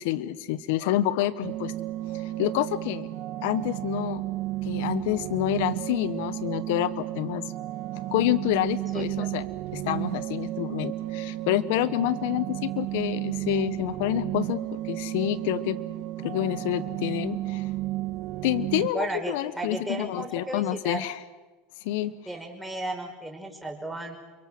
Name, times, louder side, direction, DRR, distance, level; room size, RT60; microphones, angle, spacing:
voice 1, 0.0-1.7 2.1-3.1 3.4-4.2 4.6-7.4 8.1-9.5 9.7-15.8 16.2-17.7 18.4-21.2 21.8-22.1, left 14 dB, 70° left, 15 dB, 1.3 m, -28 dB
sound 1, 1.4-18.9, right 16 dB, 60° right, 1.6 m, -33 dB
voice 2, 8.9-9.3 18.9-21.0 22.3-24.2, right 2 dB, 5° right, 1 dB, 5.4 m, -34 dB
29.0 x 23.0 x 6.3 m, 1.2 s
supercardioid pair, 115°, 0 cm